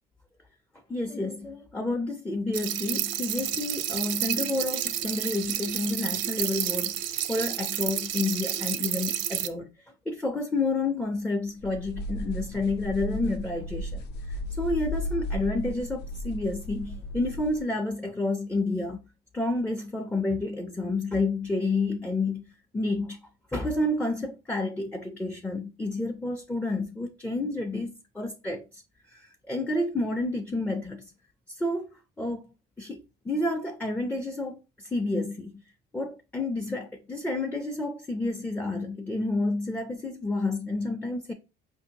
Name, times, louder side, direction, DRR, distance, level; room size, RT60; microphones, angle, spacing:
voice 1, 0.9-7.0 7.3-9.7 10.1-19.0 19.3-22.4 22.7-23.2 23.5-28.8 29.1-31.1 31.5-31.9 32.2-32.5 32.8-33.0 33.3-35.5 35.9-41.3, left 2 dB, 5° left, 0.4 m, -30 dB
sound 1, 2.5-9.5, right 11 dB, 80° right, 0.4 m, -30 dB
sound 2, 11.6-17.6, left 1 dB, 60° left, 0.5 m, -35 dB
4.9 x 2.6 x 2.8 m
cardioid pair, 120°, 19 cm